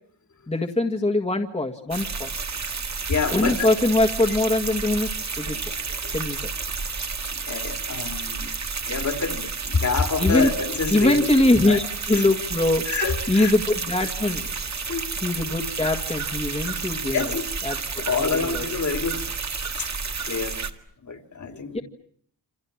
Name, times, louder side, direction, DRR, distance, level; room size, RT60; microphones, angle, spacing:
voice 1, 0.5-2.3 3.3-5.6 6.1-6.4 10.2-10.5 10.9-12.8 13.3-14.5 15.2-17.2 17.6-17.8 18.1-18.6 21.7-21.8, left 2 dB, 15° left, 1.8 m, -22 dB
sound 1, 1.9-20.7, right 5 dB, 40° right, 1.9 m, -31 dB
voice 2, 3.1-3.7 5.4-5.5 7.5-8.5 8.9-11.3 11.7-11.8 12.1-12.2 12.9-13.5 14.9-15.1 17.1-17.4 18.0-19.3 19.8-19.9 20.3-20.6 21.0-21.8, left 5 dB, 45° left, 2.7 m, -27 dB
28.0 x 27.5 x 7.3 m
wide cardioid pair, 160°, 41 cm